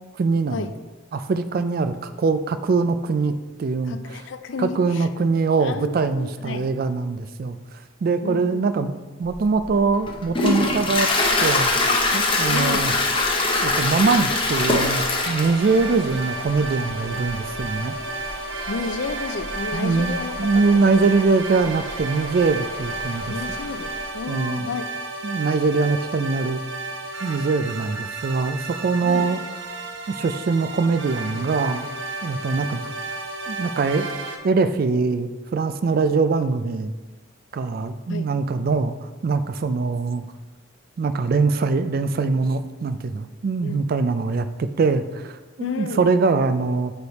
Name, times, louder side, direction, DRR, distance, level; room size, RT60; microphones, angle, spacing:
voice 1, 0.2-0.7 1.1-3.3 3.6-4.2 4.6-7.6 8.0-11.1 11.4-11.7 12.1-12.9 13.6-17.9 19.7-23.3 24.3-24.7 25.2-26.6 27.2-29.4 30.1-31.8 32.2-32.9 33.5-34.1 34.4-36.9 37.5-40.2 41.0-46.9, right 4 dB, 45° right, 11 dB, 0.3 m, -22 dB
voice 2, 3.9-5.1 5.6-6.7 8.2-8.9 12.5-12.9 18.7-20.6 23.3-24.9 29.0-29.3 38.1-38.3 43.6-43.9 45.6-46.1, left 4 dB, 60° left, 10 dB, 0.4 m, -32 dB
Toilet flush, 9.3-24.1, left 2 dB, 25° left, 0.7 m, -25 dB
sound 1, 14.4-34.4, right 3 dB, 65° right, 0.7 m, -33 dB
9.1 x 3.4 x 4.1 m, 1.2 s
head